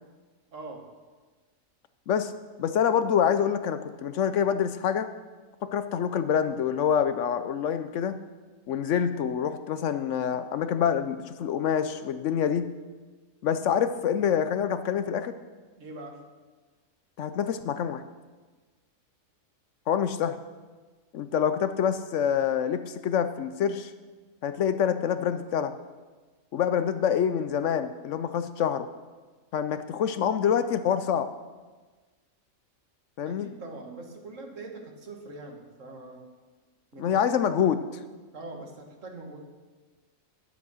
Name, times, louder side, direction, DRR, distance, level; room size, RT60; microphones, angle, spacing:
voice 1, 0.5-0.9 15.8-16.3 33.2-36.3 36.9-37.4 38.3-39.4, right 2 dB, 65° right, 3 dB, 1.8 m, -42 dB
voice 2, 2.6-5.1 5.6-8.2 8.7-12.7 13.4-15.3 17.2-18.0 19.9-20.4 21.1-23.9 24.4-25.7 26.5-28.9 29.5-31.3 33.2-33.5 37.0-37.8, left 8 dB, 70° left, 11 dB, 0.9 m, -26 dB
11.0 x 8.3 x 6.2 m, 1.3 s
omnidirectional pair, 1.4 m